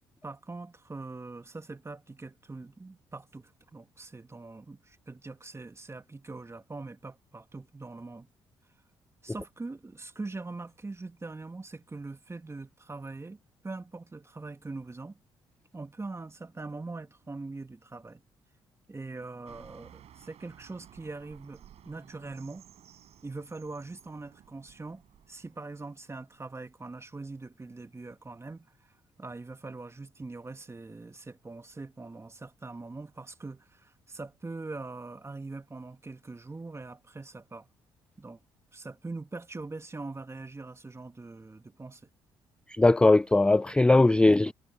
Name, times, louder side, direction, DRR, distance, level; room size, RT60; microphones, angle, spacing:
voice 1, 0.2-8.3 9.2-15.1 15.7-18.2 18.9-22.6 23.2-25.0 25.3-28.7 29.2-37.7 38.2-38.4 38.7-42.0, right 3 dB, 25° right, 2.3 m, -42 dB
sound 1, 19.4-26.5, right 10 dB, 65° right, 7.2 m, -56 dB
voice 2, 42.7-44.5, left 2 dB, 10° left, 0.3 m, -20 dB
hypercardioid pair, 50°, 12 cm